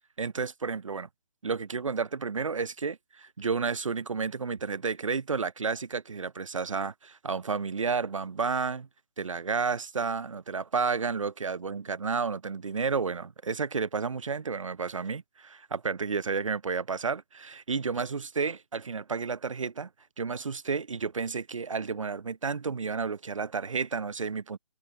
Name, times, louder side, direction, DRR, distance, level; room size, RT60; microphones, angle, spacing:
voice 1, 0.2-1.1 1.4-8.9 9.2-19.9 20.2-24.6, right 5 dB, 70° right, 0.9 m, -31 dB
figure-of-eight pair, 140°, 17 cm